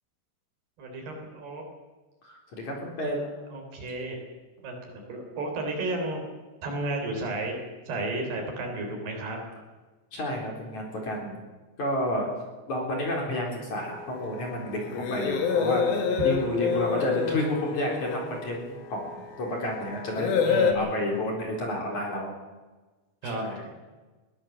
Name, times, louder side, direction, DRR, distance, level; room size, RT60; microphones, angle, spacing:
voice 1, 0.8-1.6 3.5-4.2 4.6-6.2 6.6-7.6 7.9-9.4 20.4-21.2 23.2-23.4, right 2 dB, 55° right, 3 dB, 5.7 m, -33 dB
voice 2, 2.2-3.2 10.1-11.4 11.8-12.3 12.7-22.3 23.2-23.7, left 1 dB, 40° left, 0 dB, 4.8 m, -31 dB
sound 1, 13.8-20.7, left 6 dB, 60° left, 3.3 m, -28 dB
21.5 x 17.0 x 7.4 m, 1.2 s
omnidirectional pair, 5.7 m